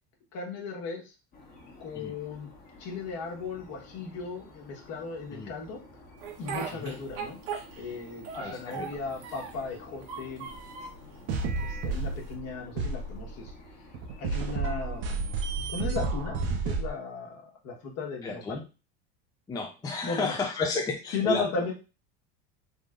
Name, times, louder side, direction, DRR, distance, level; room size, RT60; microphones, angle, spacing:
voice 1, 0.3-1.1 1.8-2.5 2.8-5.8 6.4-7.4 7.8-10.5 11.6-13.5 14.2-15.4 15.7-16.4 16.6-18.6 20.0-20.3 21.1-21.7, left 4 dB, 55° left, 0 dB, 1.4 m, -36 dB
sound 1, 1.3-15.7, left 2 dB, 30° left, 1.2 m, -52 dB
Speech, 6.2-8.0 8.2-9.7 10.0-11.0 11.6-12.3, right 6 dB, 70° right, 1.1 m, -39 dB
voice 2, 8.3-8.9 14.3-14.4 18.2-18.6 19.5-21.7, left 3 dB, 10° left, 2 dB, 0.5 m, -32 dB
sound 2, 10.5-10.6 11.3-12.5 12.8-13.5 13.9-16.9, right 4 dB, 50° right, 0.8 m, -31 dB
3.7 x 3.2 x 2.5 m, 0.30 s
supercardioid pair, 130°, 31 cm